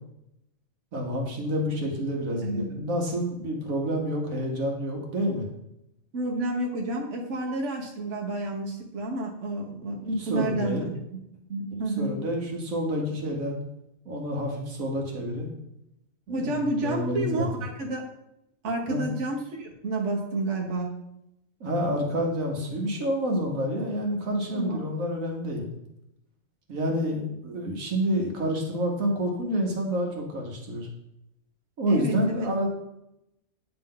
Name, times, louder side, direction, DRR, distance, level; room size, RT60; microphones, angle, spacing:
voice 1, 0.9-5.5 10.0-10.9 11.7-13.6 14.1-15.5 16.3-17.5 18.9-19.0 21.6-25.6 26.7-30.9 31.8-32.7, equal, 80° right, 1 dB, 1.5 m, -28 dB
voice 2, 6.1-10.0 10.3-11.2 11.5-12.1 16.3-18.0 18.6-20.9 24.5-24.8 31.9-32.5, right 2 dB, 60° right, -2 dB, 1.3 m, -30 dB
8.7 x 3.3 x 3.7 m, 0.82 s
omnidirectional pair, 1.4 m